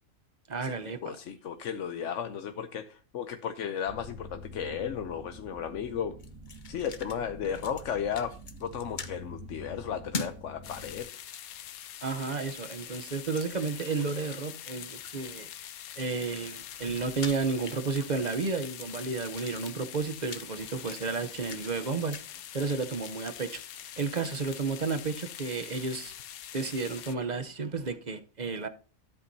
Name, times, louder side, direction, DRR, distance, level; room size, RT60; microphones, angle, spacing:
voice 1, 0.5-1.2 12.0-15.5 16.0-26.1 26.5-28.7, right 4 dB, 35° right, 0.8 m, -32 dB
voice 2, 1.0-6.2 6.7-8.3 8.6-11.1, left 8 dB, 65° left, 1.0 m, -34 dB
sound 1, 3.9-11.0, equal, 70° right, 2.3 m, -47 dB
sound 2, 6.2-7.2 7.4-7.9 8.2-9.1 10.1-10.4 10.8-12.3 12.9-13.4 14.0-15.5 16.1-18.2 18.5-21.8 22.1-22.3, left 4 dB, 40° left, 0.9 m, -43 dB
sound 3, 10.6-27.2, left 11 dB, 85° left, 1.2 m, -44 dB
13.0 x 8.4 x 2.7 m
omnidirectional pair, 1.5 m